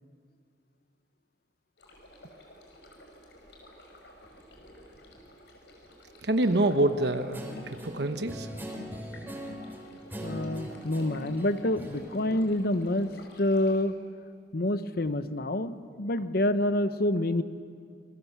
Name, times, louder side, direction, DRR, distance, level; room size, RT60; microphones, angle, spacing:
sound 1, 1.8-13.8, left 1 dB, 80° left, 5.7 m, -53 dB
voice 1, 6.2-8.5, right 1 dB, 70° right, 8 dB, 1.1 m, -26 dB
Guitar, 7.3-13.1, equal, 10° right, 4.3 m, -41 dB
voice 2, 10.2-13.1 13.4-13.9 14.5-17.4, left 1 dB, 60° left, 11 dB, 1.0 m, -27 dB
28.0 x 21.5 x 7.3 m, 2.3 s
head